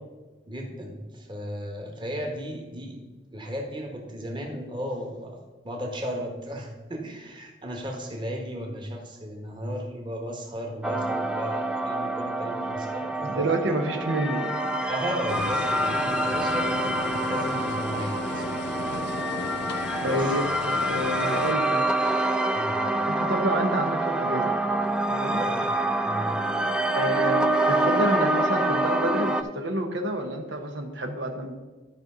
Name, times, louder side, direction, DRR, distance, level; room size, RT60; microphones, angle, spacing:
voice 1, 0.5-3.0 3.3-13.5 14.9-18.5 18.8-19.0 20.0-20.3 22.5-22.8 25.3-25.6 26.0-26.3, equal, 25° right, 1 dB, 1.4 m, -35 dB
sound 1, 10.8-29.4, right 1 dB, 5° right, 0.4 m, -26 dB
voice 2, 13.2-14.5 20.0-21.9 23.0-24.6 25.1-25.4 26.9-31.5, right 1 dB, 85° right, 4 dB, 0.9 m, -29 dB
sound 2, 15.3-21.5, left 6 dB, 65° left, 0.4 m, -36 dB
12.5 x 5.2 x 3.8 m, 1.2 s
head